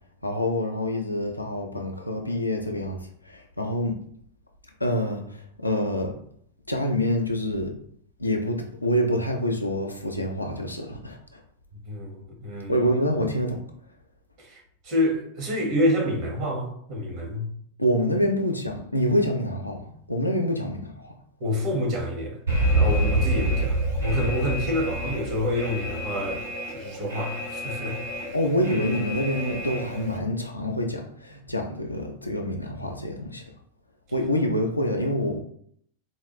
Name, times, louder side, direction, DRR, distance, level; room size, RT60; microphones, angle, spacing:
voice 1, 0.2-4.0 4.8-6.2 6.7-7.8 8.2-11.4 12.5-13.6 17.8-21.1 28.3-33.4 34.1-35.4, equal, 85° left, 0.5 m, -26 dB
voice 2, 11.9-12.8 14.4-17.5 21.4-22.4 22.7-28.0, left 1 dB, 45° right, 1.3 m, -28 dB
Alarm, 22.5-30.2, right 1 dB, 80° right, 1.5 m, -27 dB
4.1 x 2.3 x 3.0 m
figure-of-eight pair, 90°, 0 cm